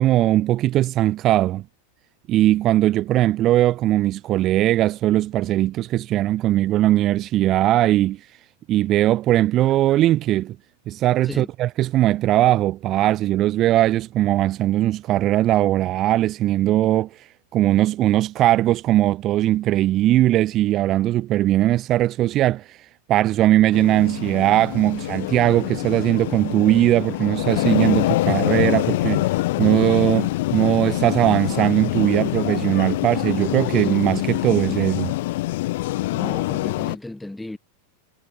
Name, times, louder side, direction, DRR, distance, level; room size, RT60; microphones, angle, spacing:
voice 1, 0.0-1.6 2.3-8.2 8.7-10.6 10.9-22.8 23.1-29.3 29.6-35.1, right 14 dB, 35° right, 1.8 m, -19 dB
sound 1, 23.7-37.0, left 18 dB, 50° left, 2.2 m, -25 dB
voice 2, 36.1-37.6, left 1 dB, 5° left, 4.8 m, -34 dB
figure-of-eight pair, 90°, 0 cm